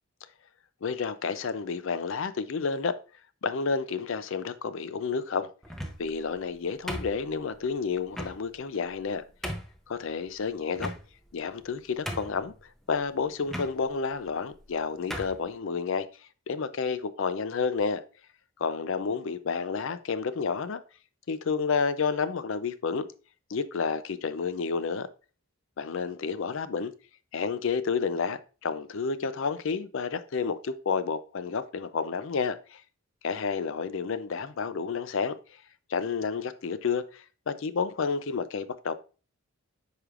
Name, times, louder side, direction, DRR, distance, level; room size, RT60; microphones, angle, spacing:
voice 1, 0.8-2.9 3.4-5.5 6.0-9.2 9.9-10.9 11.3-12.5 12.9-16.1 16.5-18.0 18.6-20.8 21.3-23.1 23.5-25.1 25.8-26.9 27.3-32.8 33.2-35.6 35.9-38.9, left 5 dB, 60° left, 0.4 m, -30 dB
sound 1, 5.6-6.2 6.9-7.5 8.1-8.4 8.9-9.0 9.4-9.8 10.8-11.3 11.7-11.8 12.1-12.5 13.5-13.7 14.5-14.7 15.1-15.4, equal, ahead, 0.6 m, -36 dB
7.8 x 4.9 x 2.4 m
head